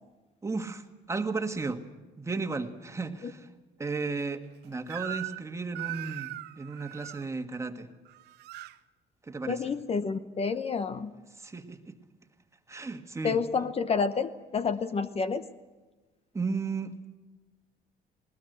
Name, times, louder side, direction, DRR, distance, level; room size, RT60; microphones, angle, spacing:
voice 1, 0.4-1.8 2.2-3.5 3.8-7.9 9.2-9.6 11.3-12.0 12.7-13.4 16.3-16.9, right 4 dB, 15° right, 6 dB, 1.7 m, -34 dB
Crying sobbing / Screech, 4.9-5.5 5.7-7.2 8.1-8.8, right 16 dB, 80° right, 0.7 m, -39 dB
voice 2, 9.5-11.1 13.2-15.5, left 5 dB, 35° left, 11 dB, 1.0 m, -29 dB
20.0 x 19.5 x 8.0 m, 1.2 s
cardioid pair, 110°, 17 cm